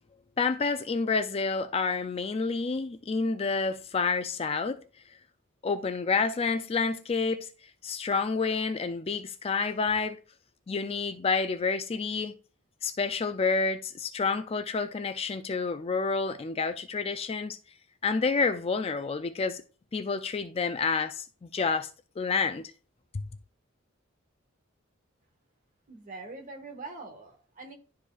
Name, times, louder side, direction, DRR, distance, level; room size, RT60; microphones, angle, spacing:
voice 1, 0.4-4.8 5.6-7.5 7.8-10.2 10.7-12.4 12.8-17.6 18.0-19.6 19.9-21.9 22.2-22.6, left 4 dB, 30° left, 0.4 m, -29 dB
voice 2, 25.9-27.7, right 3 dB, 40° right, 1.5 m, -43 dB
11.5 x 4.7 x 2.4 m
head